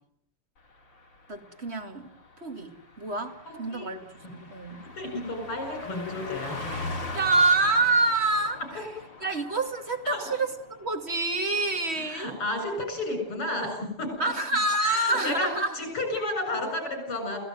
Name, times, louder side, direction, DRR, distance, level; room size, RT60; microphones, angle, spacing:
Car passing by, 0.7-12.6 12.9-13.1, left 2 dB, 55° left, 4.8 m, -42 dB
voice 1, 1.3-2.1 2.4-4.8 7.1-8.9 9.2-12.3 14.2-15.8, right 2 dB, 30° right, 5 dB, 2.5 m, -27 dB
voice 2, 3.5-3.9 5.0-6.6 10.1-10.2 12.0-14.3 14.8-17.4, left 1 dB, 85° left, 5 dB, 8.5 m, -32 dB
29.5 x 16.0 x 9.3 m, 0.73 s
omnidirectional pair, 2.4 m